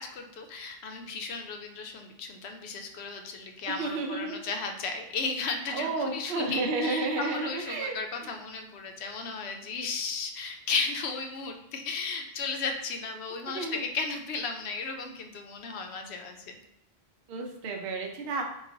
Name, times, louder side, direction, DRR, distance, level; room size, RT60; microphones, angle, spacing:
voice 1, 0.0-16.4, left 4 dB, 85° left, 4 dB, 0.9 m, -35 dB
voice 2, 3.7-4.4 5.7-8.0 13.5-13.8 17.3-18.4, right 3 dB, 70° right, 2 dB, 0.8 m, -31 dB
3.8 x 2.4 x 3.8 m, 0.78 s
omnidirectional pair, 1.1 m